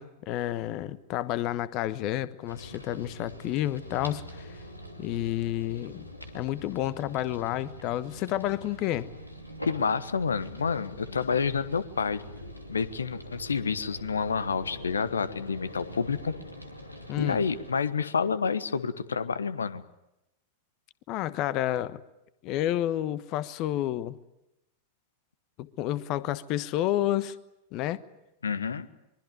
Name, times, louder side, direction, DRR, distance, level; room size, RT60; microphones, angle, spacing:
voice 1, 0.0-4.2 5.0-6.1 6.3-9.1 17.1-17.4 21.1-22.0 22.4-24.1 25.6-27.3 27.7-28.0, left 13 dB, 40° left, 1.2 m, -30 dB
sound 1, 2.5-17.7, equal, 90° left, 2.8 m, -44 dB
voice 2, 9.6-12.2 12.7-16.3 17.2-19.8 28.4-28.9, left 5 dB, 70° left, 1.3 m, -29 dB
24.0 x 23.0 x 9.4 m
figure-of-eight pair, 90°, 0 cm